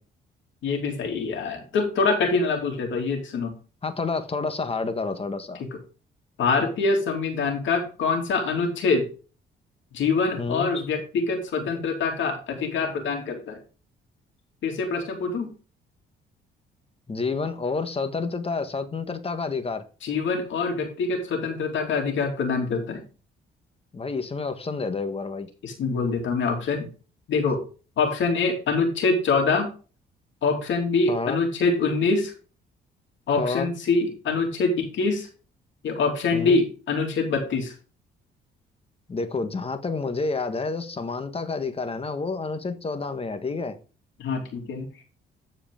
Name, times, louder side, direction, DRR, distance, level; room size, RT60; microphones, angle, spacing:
voice 1, 0.6-3.5 6.4-9.1 9.9-13.6 14.6-15.5 20.0-23.0 25.6-26.9 27.3-27.6 28.0-29.7 30.4-32.3 33.3-35.3 35.8-37.7 44.2-44.9, left 4 dB, 70° left, 2.9 m, -25 dB
voice 2, 3.8-5.6 10.4-10.7 17.1-19.9 23.9-25.5 31.1-31.4 33.4-33.7 36.3-36.6 39.1-43.8, left 4 dB, 30° left, 1.5 m, -29 dB
13.0 x 4.9 x 3.8 m
cardioid pair, 90°, 20 cm